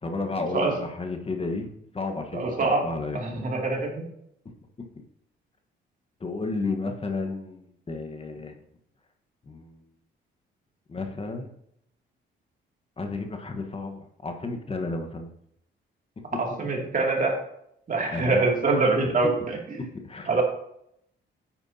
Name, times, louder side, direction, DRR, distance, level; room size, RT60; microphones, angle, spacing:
voice 1, 0.0-1.7 1.9-3.5 4.8-4.9 6.2-8.5 9.5-9.7 10.9-11.5 13.0-15.3 16.3-16.4 18.1-18.4 19.8-20.4, left 3 dB, 30° left, 5 dB, 1.3 m, -32 dB
voice 2, 2.3-2.9 3.1-4.0 16.3-17.4 17.9-19.6 20.3-20.4, right 3 dB, 40° right, 0 dB, 2.7 m, -24 dB
9.7 x 8.9 x 2.9 m, 0.74 s
cardioid pair, 90°, 20 cm